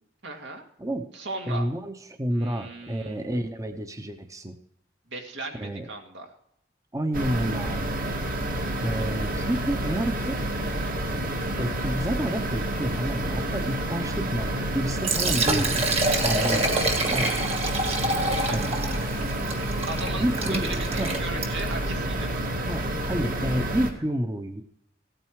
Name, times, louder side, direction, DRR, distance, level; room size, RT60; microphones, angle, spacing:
voice 1, 0.2-0.7 1.1-1.7 2.3-3.3 5.1-6.3 18.3-18.6 19.9-22.4, right 2 dB, 80° right, 3 dB, 2.3 m, -37 dB
voice 2, 1.5-4.6 5.5-5.9 6.9-8.0 8.8-10.4 11.6-17.4 18.5-18.7 20.2-21.2 22.6-24.6, right 1 dB, 20° right, 7 dB, 0.8 m, -30 dB
sound 1, 7.1-23.9, right 1 dB, 50° right, 1.9 m, -29 dB
Liquid, 14.9-21.8, right 2 dB, 35° right, 1.8 m, -27 dB
16.5 x 9.1 x 4.7 m, 0.72 s
head